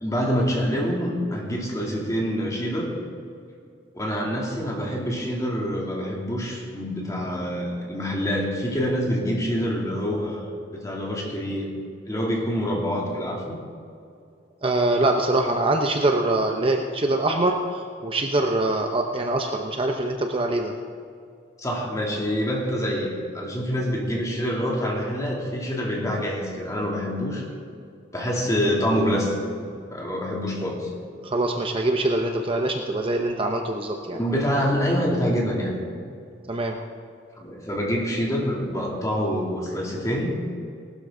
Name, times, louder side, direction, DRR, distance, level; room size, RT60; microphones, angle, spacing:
voice 1, 0.0-3.0 3.9-10.5 10.8-11.7 12.1-13.6 21.6-27.4 28.1-29.3 29.9-30.9 34.1-35.8 37.4-40.3, equal, 20° left, -3 dB, 2.7 m, -26 dB
voice 2, 14.6-20.7 31.2-34.2 36.5-36.8, right 2 dB, 30° right, 3 dB, 0.8 m, -24 dB
18.5 x 12.5 x 3.8 m, 2.4 s
head